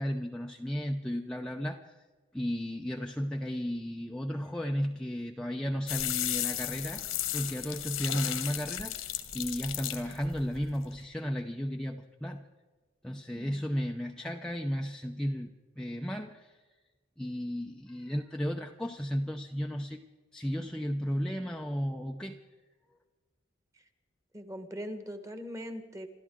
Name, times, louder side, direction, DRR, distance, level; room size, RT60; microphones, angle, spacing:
voice 1, 0.0-2.0 2.3-7.0 7.3-12.4 13.0-16.7 17.2-20.0 20.3-22.4, equal, 5° left, 1 dB, 0.6 m, -34 dB
sound 1, 5.9-11.0, left 12 dB, 80° left, 1.6 m, -35 dB
voice 2, 24.3-26.1, equal, 15° right, 8 dB, 1.3 m, -41 dB
27.5 x 13.5 x 3.8 m, 1.3 s
head